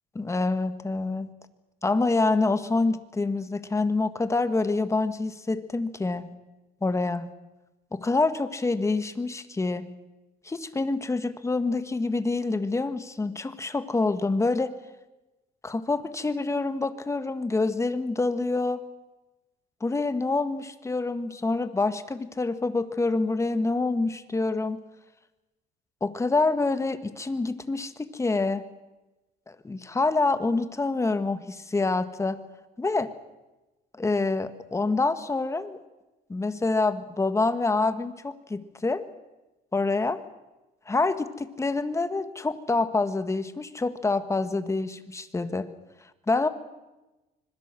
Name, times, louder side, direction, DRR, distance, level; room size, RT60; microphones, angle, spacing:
voice 1, 0.1-1.3 1.8-6.3 6.8-7.3 7.9-9.9 10.4-14.7 15.6-18.8 19.8-24.8 26.0-28.6 29.5-32.4 32.8-33.1 34.0-35.8 36.3-39.0 39.7-40.2 40.9-45.7 46.3-46.5, left 3 dB, 15° left, 11 dB, 1.7 m, -26 dB
25.5 x 21.5 x 7.6 m, 1.1 s
cardioid pair, 110°, 17 cm